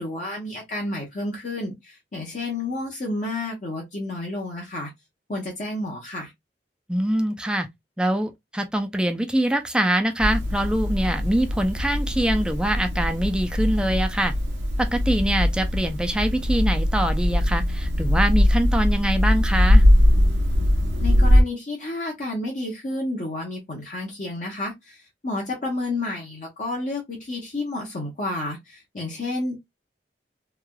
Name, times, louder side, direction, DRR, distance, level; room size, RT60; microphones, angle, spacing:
voice 1, 0.0-4.9 5.3-6.3 21.0-29.6, left 2 dB, 45° left, 0.7 m, -30 dB
voice 2, 6.9-7.7 8.0-14.3 14.8-19.8, right 1 dB, 5° right, 0.4 m, -24 dB
sound 1, 10.2-21.4, left 1 dB, 75° right, 0.8 m, -21 dB
3.2 x 2.3 x 2.2 m
head